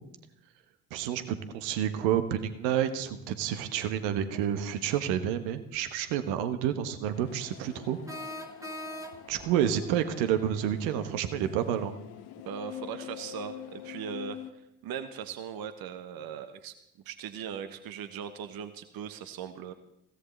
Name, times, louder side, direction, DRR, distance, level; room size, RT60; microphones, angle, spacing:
voice 1, 0.9-8.0 9.3-11.9, right 10 dB, 65° right, 10 dB, 1.4 m, -29 dB
sound 1, 7.1-14.5, left 12 dB, 55° left, 1.2 m, -46 dB
sound 2, 8.1-9.5, equal, 5° right, 1.7 m, -40 dB
voice 2, 12.4-14.4 14.8-16.7 17.0-19.7, right 8 dB, 50° right, 10 dB, 1.2 m, -39 dB
21.0 x 16.5 x 3.3 m, 0.83 s
figure-of-eight pair, 45°, 47 cm